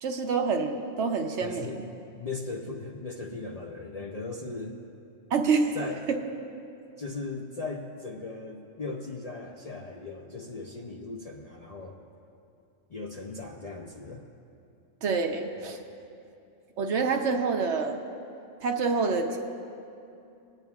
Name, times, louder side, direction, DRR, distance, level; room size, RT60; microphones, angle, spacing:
voice 1, 0.0-1.8 5.3-5.8 6.1-6.2 15.0-15.8 16.8-18.0 18.6-19.4, right 4 dB, 65° right, 4 dB, 1.0 m, -27 dB
voice 2, 1.4-1.8 2.1-4.8 5.7-6.1 7.0-12.0 12.9-14.3, left 3 dB, 45° left, -1 dB, 0.5 m, -38 dB
23.5 x 9.0 x 2.4 m, 2.6 s
omnidirectional pair, 1.3 m